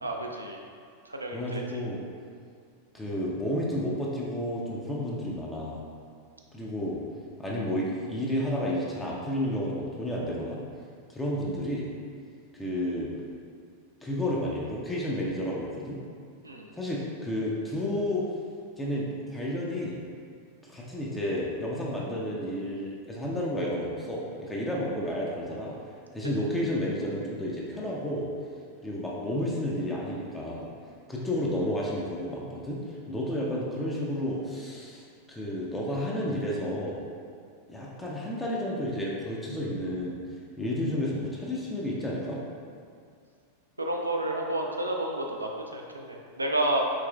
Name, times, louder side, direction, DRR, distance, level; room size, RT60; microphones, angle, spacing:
voice 1, 0.0-0.6 1.1-1.6 16.4-16.8 43.8-46.8, right 1 dB, 80° right, 0 dB, 0.3 m, -30 dB
voice 2, 1.3-2.0 2.9-5.8 6.5-7.0 7.4-10.6 11.1-11.9 12.5-13.1 14.0-16.0 16.7-18.3 18.8-20.0 20.6-25.7 26.1-28.3 28.8-30.7 31.1-32.8 33.1-37.0 37.7-40.2 40.6-42.4, left 1 dB, 10° left, -5 dB, 0.5 m, -31 dB
4.8 x 3.0 x 2.3 m, 2.3 s
figure-of-eight pair, 90°, 0 cm